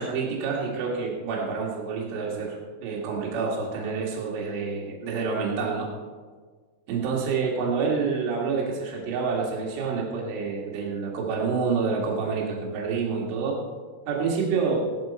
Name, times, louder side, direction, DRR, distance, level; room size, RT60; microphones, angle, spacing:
voice 1, 0.0-5.9 6.9-13.6 14.1-14.8, right 5 dB, 70° right, -2 dB, 4.5 m, -28 dB
17.5 x 11.0 x 4.4 m, 1.5 s
omnidirectional pair, 6.0 m